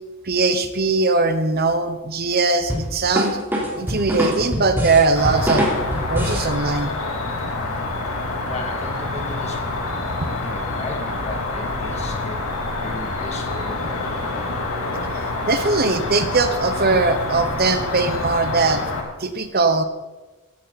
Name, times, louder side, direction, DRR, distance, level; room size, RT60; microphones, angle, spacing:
voice 1, 0.2-3.4 3.8-5.7 6.1-6.9 10.2-10.3 15.1-18.8 19.2-19.8, right 3 dB, 45° right, 8 dB, 1.0 m, -20 dB
sound 1, 2.7-6.5, equal, 10° right, 3.8 m, -23 dB
Cricket, 5.2-19.0, left 2 dB, 70° left, 3.3 m, -27 dB
voice 2, 8.4-9.6 10.2-12.5 12.7-14.1, left 2 dB, 30° left, 1 dB, 2.7 m, -35 dB
17.5 x 16.0 x 4.2 m, 1.2 s
head